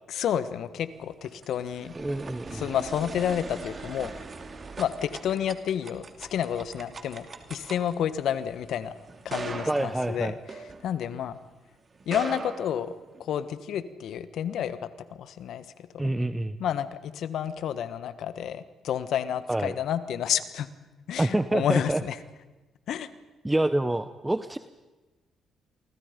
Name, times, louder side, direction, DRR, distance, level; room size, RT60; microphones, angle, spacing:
voice 1, 0.1-1.9 2.5-4.1 4.8-8.9 9.2-10.4 10.8-11.4 12.1-12.9 13.2-15.6 16.6-20.7 21.1-22.2 22.9-23.1, left 9 dB, 70° left, 13 dB, 1.4 m, -30 dB
sound 1, 1.0-11.4 12.0-13.5, right 4 dB, 40° right, 2.8 m, -41 dB
voice 2, 2.0-2.6 9.7-10.3 16.0-16.6 19.5-19.7 21.2-22.0 23.4-24.6, right 1 dB, 15° right, 11 dB, 1.1 m, -27 dB
28.5 x 24.0 x 5.3 m, 1.2 s
hypercardioid pair, 50°, 0 cm